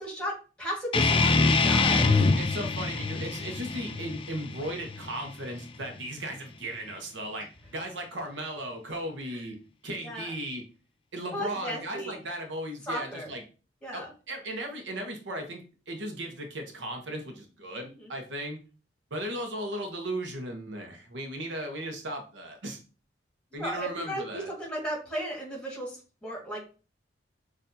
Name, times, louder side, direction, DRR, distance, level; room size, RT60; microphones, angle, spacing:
voice 1, 0.0-2.1 7.4-7.5 9.3-9.5 10.0-10.3 11.3-12.2 12.8-13.3 13.8-14.1 17.8-18.1 23.6-26.6, equal, 5° left, -2 dB, 1.7 m, -35 dB
sound 1, 0.9-6.0, left 3 dB, 30° left, 0.4 m, -25 dB
voice 2, 2.4-9.6 9.8-10.6 11.1-13.4 13.9-18.6 19.1-22.8 23.5-24.5, right 1 dB, 75° right, 4 dB, 0.9 m, -36 dB
6.5 x 2.6 x 2.7 m, 0.36 s
head